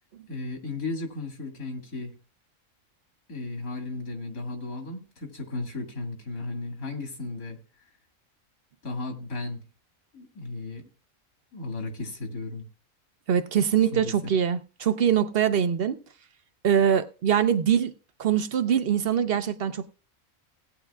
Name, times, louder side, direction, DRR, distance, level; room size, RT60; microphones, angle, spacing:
voice 1, 0.3-2.1 3.3-7.6 8.8-9.6 10.1-10.9 11.5-12.7 13.9-14.1, left 2 dB, 85° left, 2.6 m, -35 dB
voice 2, 13.3-16.0 16.6-17.9 18.2-19.9, right 8 dB, 50° right, 0.8 m, -23 dB
18.0 x 9.0 x 2.3 m
omnidirectional pair, 1.5 m